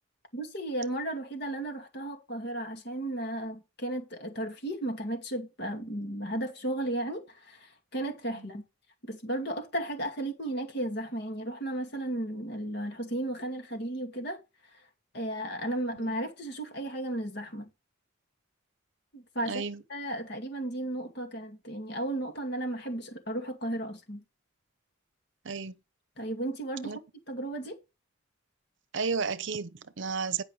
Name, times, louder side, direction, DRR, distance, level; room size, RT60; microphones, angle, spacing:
voice 1, 0.3-8.6 9.0-14.4 14.7-14.8 15.1-17.7 19.1-19.6 19.9-24.2 26.2-27.0 27.3-27.8, right 1 dB, 55° left, 2.3 m, -34 dB
voice 2, 19.5-19.8 25.4-25.7 26.8-27.0 28.9-30.4, right 5 dB, 65° right, 0.8 m, -33 dB
10.5 x 5.5 x 4.7 m
head